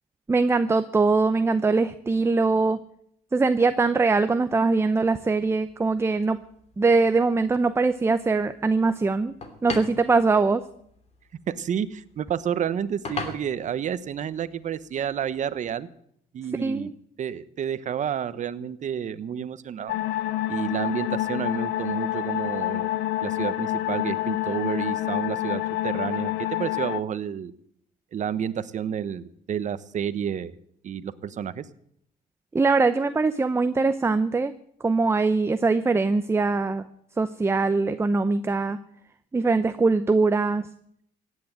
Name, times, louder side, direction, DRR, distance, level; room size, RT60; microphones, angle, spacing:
voice 1, 0.3-2.8 3.3-6.4 6.8-9.3 9.6-10.6 16.5-16.9 32.5-34.5 34.8-36.8 37.2-38.8 39.3-40.7, right 3 dB, 15° right, 11 dB, 0.7 m, -22 dB
sound 1, 4.9-15.8, left 3 dB, 40° left, 3.0 m, -43 dB
voice 2, 11.5-15.9 16.3-16.9 17.2-20.0 20.5-22.9 23.2-27.5 28.1-30.5 30.8-31.7, right 8 dB, 45° right, 14 dB, 1.0 m, -30 dB
sound 2, 19.9-27.0, left 15 dB, 85° left, 0.7 m, -28 dB
16.0 x 9.6 x 8.9 m, 0.70 s
cardioid pair, 110°, 17 cm